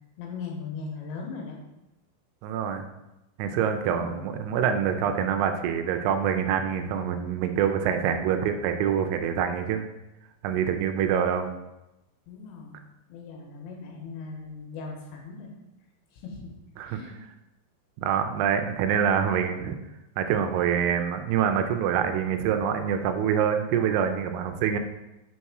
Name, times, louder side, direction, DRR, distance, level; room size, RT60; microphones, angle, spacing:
voice 1, 0.2-1.6 3.7-4.3 12.3-12.8 13.1-15.5 16.1-16.5 16.8-17.2, left 4 dB, 80° left, 0 dB, 3.1 m, -39 dB
voice 2, 2.4-2.9 3.4-9.9 10.4-11.5 16.8-17.1 18.0-19.7 20.2-24.8, right 8 dB, 85° right, 7 dB, 3.0 m, -25 dB
6.5 x 4.1 x 4.7 m, 0.95 s
omnidirectional pair, 5.5 m